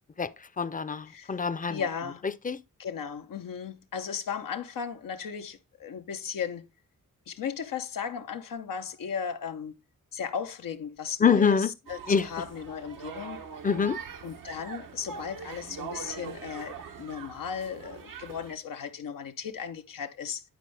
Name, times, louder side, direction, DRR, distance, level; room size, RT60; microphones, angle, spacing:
voice 1, 0.6-1.8 2.4-2.6 11.2-11.7 12.1-12.3 13.6-14.0, left 6 dB, 25° left, 0.5 m, -24 dB
voice 2, 1.7-2.3 2.8-6.6 7.3-9.7 10.1-13.4 14.2-20.4, left 7 dB, 85° left, 0.8 m, -36 dB
sound 1, 11.9-18.5, right 6 dB, 85° right, 1.0 m, -42 dB
10.5 x 4.2 x 3.3 m
cardioid pair, 55°, 32 cm